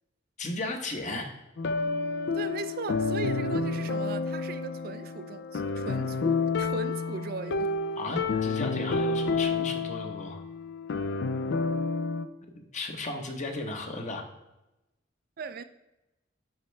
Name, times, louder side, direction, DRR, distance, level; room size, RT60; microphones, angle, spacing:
voice 1, 0.4-1.3 8.0-10.4 12.5-14.2, left 2 dB, 40° left, 1.0 m, -35 dB
sound 1, 1.6-12.2, left 4 dB, 65° left, 0.4 m, -29 dB
voice 2, 2.3-7.8 15.4-15.6, right 5 dB, 50° right, 0.4 m, -38 dB
10.5 x 4.4 x 3.3 m
head